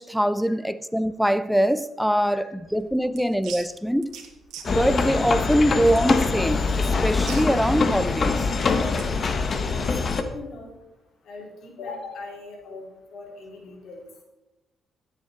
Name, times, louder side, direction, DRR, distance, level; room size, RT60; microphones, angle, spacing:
voice 1, 0.0-4.2 4.7-8.4, equal, ahead, 14 dB, 0.5 m, -23 dB
sound 1, 2.7-9.2, right 7 dB, 85° right, 1.9 m, -44 dB
sound 2, 4.6-10.2, left 4 dB, 45° left, 1.2 m, -24 dB
voice 2, 10.1-10.7 11.2-14.0, left 3 dB, 70° left, 1 dB, 3.0 m, -40 dB
17.0 x 8.1 x 4.1 m, 0.96 s
cardioid pair, 90°, 0 cm